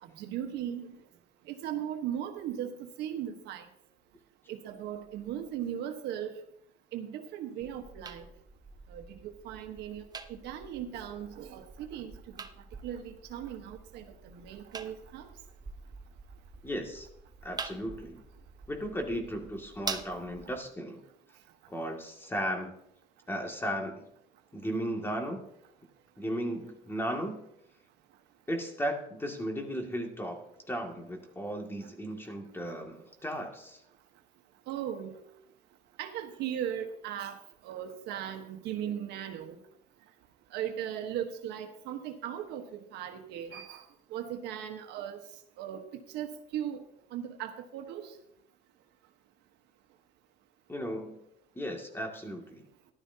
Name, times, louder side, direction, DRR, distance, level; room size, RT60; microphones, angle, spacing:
voice 1, 0.0-1.0 1.5-3.7 4.5-6.4 6.9-8.3 8.9-12.5 12.8-15.3 20.1-20.2 34.7-35.2 36.0-39.6 40.5-45.2 45.6-46.8 47.1-48.1, right 10 dB, 85° right, 5 dB, 1.2 m, -38 dB
sound 1, 7.6-20.6, right 4 dB, 25° right, 0.8 m, -45 dB
voice 2, 16.6-17.1 17.4-18.2 18.7-21.0 21.7-22.7 23.3-24.0 24.5-25.4 26.2-27.4 28.5-33.8 50.7-51.2 51.6-52.7, equal, 15° left, 2 dB, 2.2 m, -35 dB
14.0 x 12.0 x 2.8 m, 0.74 s
cardioid pair, 110°, 17 cm